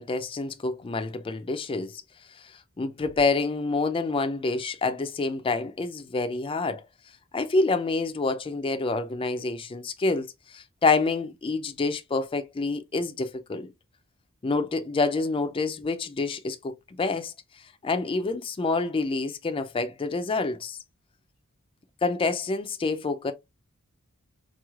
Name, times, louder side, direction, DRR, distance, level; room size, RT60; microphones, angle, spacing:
voice 1, 0.0-2.0 2.8-6.8 7.3-10.3 10.5-13.7 14.4-16.7 17.0-17.3 17.8-20.8 22.0-23.3, left 3 dB, 25° left, 0.4 m, -27 dB
3.9 x 3.1 x 2.3 m
head